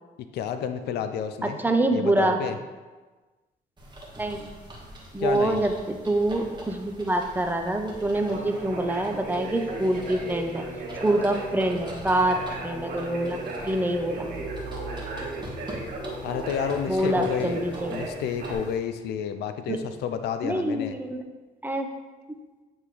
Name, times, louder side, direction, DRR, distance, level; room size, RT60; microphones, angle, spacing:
voice 1, 0.3-1.6 1.9-2.6 5.2-5.6 16.2-21.0, left 8 dB, 90° left, 9 dB, 0.4 m, -30 dB
voice 2, 1.4-2.4 4.2-4.5 5.1-10.6 10.9-14.3 16.9-18.0 19.7-19.8 20.4-21.2 21.6-21.9, right 1 dB, 10° right, 4 dB, 0.7 m, -26 dB
sound 1, 3.8-18.8, right 1 dB, 25° right, 1.6 m, -43 dB
Conversation, 8.0-18.5, right 2 dB, 70° right, 1.7 m, -36 dB
8.7 x 3.5 x 3.3 m, 1.3 s
cardioid pair, 80°, 16 cm